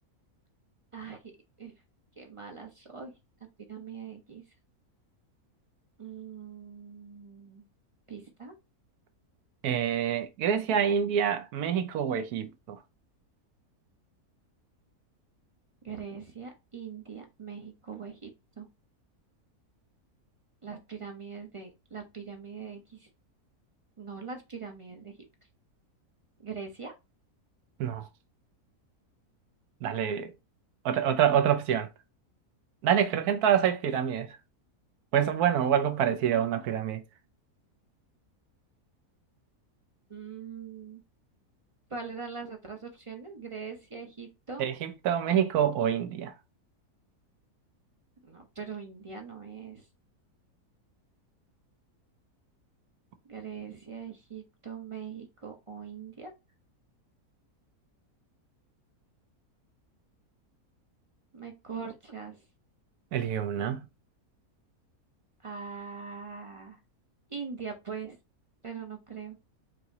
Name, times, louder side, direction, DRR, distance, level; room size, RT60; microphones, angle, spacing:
voice 1, 0.9-1.3 1.6-1.7 2.2-3.1 3.7-4.4 6.0-7.6 8.1-8.5 15.8-18.3 18.6-18.7 20.6-23.1 24.0-25.2 26.4-26.9 40.1-41.0 41.9-44.6 48.2-49.8 53.3-56.3 61.3-62.4 65.4-66.8 67.3-68.2 68.6-69.4, right 6 dB, 40° right, 0.4 m, -41 dB
voice 2, 9.6-12.8 27.8-28.0 29.8-30.3 30.8-31.9 32.8-34.3 35.1-37.0 44.6-46.3 63.1-63.8, right 9 dB, 85° right, 1.2 m, -26 dB
4.8 x 3.0 x 2.7 m
omnidirectional pair, 1.6 m